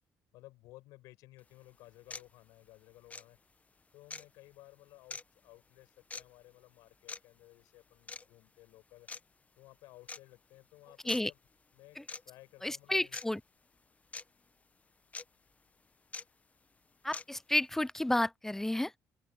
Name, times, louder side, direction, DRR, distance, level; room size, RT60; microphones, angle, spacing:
voice 1, 0.3-3.4 3.9-9.1 9.5-11.4 11.7-12.0 12.2-13.2, left 18 dB, 85° left, 6.3 m, -57 dB
sound 1, 1.4-1.5 2.1-2.3 3.1-3.2 4.1-4.3 5.1-5.2 6.1-6.2 7.1-7.2 8.1-8.3 9.1-9.2 10.1-10.2 11.1-11.2 12.1-12.2 13.1-13.3 14.1-14.2 15.1-15.2 16.1-16.2 17.1-17.2, left 4 dB, 25° left, 0.8 m, -42 dB
voice 2, 12.6-13.4 17.0-18.9, left 1 dB, 5° left, 0.5 m, -31 dB
open air
cardioid pair, 90°, 6 cm